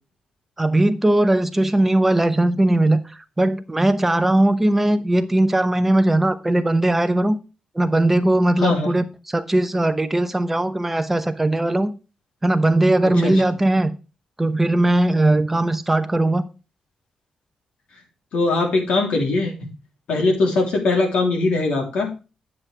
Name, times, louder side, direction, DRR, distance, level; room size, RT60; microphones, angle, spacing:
voice 1, 0.6-3.0 3.4-7.4 7.7-11.9 12.4-13.9 14.4-16.4, right 1 dB, 10° right, 0.8 m, -19 dB
voice 2, 8.6-8.9 13.2-13.4 18.3-19.7 20.1-22.1, left 3 dB, 85° left, 3.2 m, -21 dB
9.6 x 7.5 x 3.4 m
wide cardioid pair, 130°, 2 cm